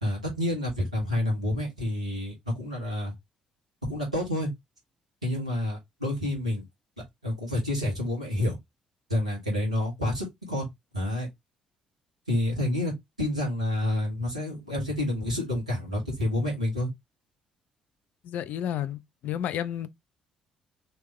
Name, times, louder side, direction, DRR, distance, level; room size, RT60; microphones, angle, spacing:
voice 1, 0.0-3.1 3.9-4.5 5.2-6.6 7.2-8.6 9.1-10.7 10.9-11.3 12.3-12.9 13.2-16.9, left 1 dB, 85° right, 1.5 m, -28 dB
voice 2, 18.2-19.9, left 10 dB, 55° left, 0.4 m, -31 dB
3.4 x 2.9 x 2.9 m
figure-of-eight pair, 45°, 3 cm